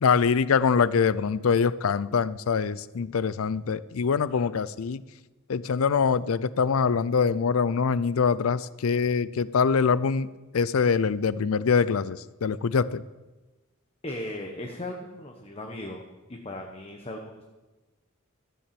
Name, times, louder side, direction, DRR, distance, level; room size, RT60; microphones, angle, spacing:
voice 1, 0.0-5.0 5.5-13.0, left 5 dB, 85° left, 18 dB, 0.5 m, -24 dB
voice 2, 14.0-16.0 16.3-17.4, left 1 dB, 30° left, 2 dB, 1.1 m, -37 dB
13.5 x 7.2 x 7.6 m, 1.1 s
head